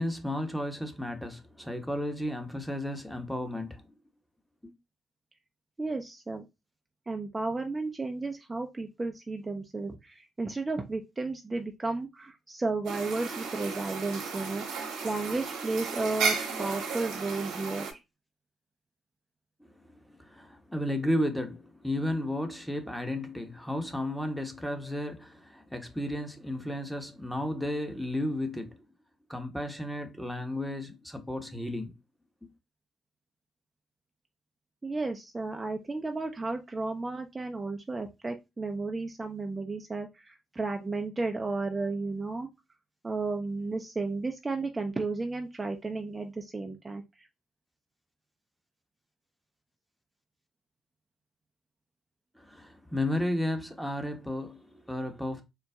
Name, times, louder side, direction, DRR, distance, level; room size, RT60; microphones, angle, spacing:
voice 1, 0.0-3.8 4.6-4.7 19.6-28.8 29.3-31.9 32.4-32.5 52.4-55.4, left 1 dB, 5° left, 1.1 m, -33 dB
voice 2, 5.8-6.4 7.1-18.0 34.8-42.5 43.0-47.3, right 3 dB, 30° right, 0.6 m, -33 dB
sound 1, 12.8-17.9, right 5 dB, 75° right, 1.1 m, -34 dB
4.0 x 2.2 x 3.5 m
hypercardioid pair, 45°, 0 cm